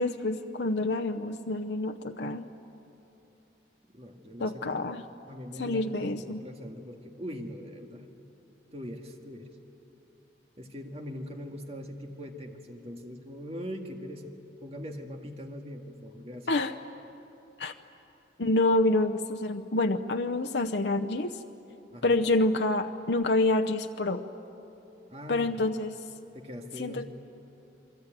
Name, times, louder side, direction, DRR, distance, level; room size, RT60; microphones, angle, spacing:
voice 1, 0.0-2.5 4.4-5.0 5.6-6.4 16.5-16.7 17.6-17.7 18.4-21.4 22.0-24.2 25.3-25.9 26.8-27.1, left 2 dB, 70° left, 7 dB, 0.8 m, -27 dB
voice 2, 3.9-4.8 5.3-8.1 8.7-9.6 10.6-14.3 14.6-16.5 21.9-22.2 25.1-25.7 26.3-27.1, equal, 35° right, 3 dB, 1.9 m, -41 dB
28.0 x 22.5 x 9.1 m, 2.9 s
head